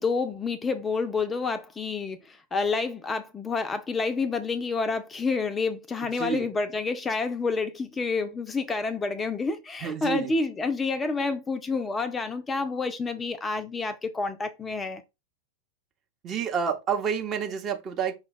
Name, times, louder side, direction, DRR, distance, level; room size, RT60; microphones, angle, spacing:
voice 1, 0.0-15.0, left 4 dB, 15° left, 0.4 m, -29 dB
voice 2, 6.2-6.5 9.8-10.3 16.2-18.1, right 7 dB, 30° right, 0.8 m, -29 dB
5.1 x 2.2 x 4.1 m
figure-of-eight pair, 90°, 0 cm